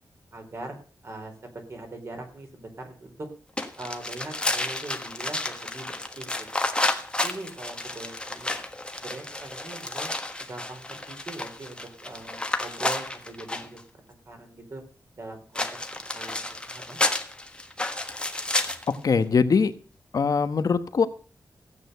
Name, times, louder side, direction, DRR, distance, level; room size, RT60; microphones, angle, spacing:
voice 1, 0.3-0.8 1.0-3.3 3.8-6.8 7.2-8.6 9.0-10.1 10.5-14.8 15.2-17.0, right 2 dB, 40° right, 4 dB, 4.0 m, -41 dB
sound 1, 3.6-13.8 15.5-19.0, left 2 dB, 15° left, 1.4 m, -31 dB
voice 2, 18.9-19.7 20.1-21.1, left 5 dB, 60° left, 11 dB, 1.2 m, -22 dB
16.0 x 8.8 x 6.8 m, 0.39 s
wide cardioid pair, 155°, 7 cm